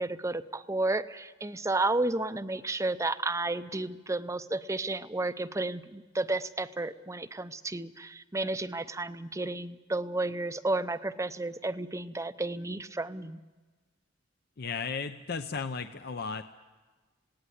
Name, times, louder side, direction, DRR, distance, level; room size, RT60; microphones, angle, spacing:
voice 1, 0.0-13.4, right 2 dB, 15° right, 12 dB, 0.6 m, -32 dB
voice 2, 14.6-16.4, left 5 dB, 55° left, 9 dB, 0.7 m, -35 dB
19.5 x 17.5 x 10.0 m, 1.3 s
head